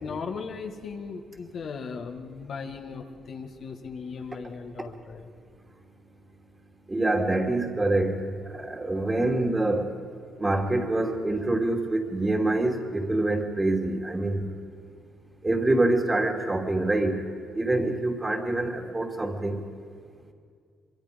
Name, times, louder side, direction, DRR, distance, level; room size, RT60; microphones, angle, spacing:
voice 1, 0.0-5.3, left 5 dB, 60° left, 4 dB, 1.8 m, -37 dB
voice 2, 6.9-8.2 8.5-9.9 10.4-14.4 15.4-17.1 17.5-19.6, right 2 dB, 20° right, 2 dB, 2.8 m, -25 dB
24.0 x 24.0 x 5.3 m, 2.2 s
cardioid pair, 90°, 0 cm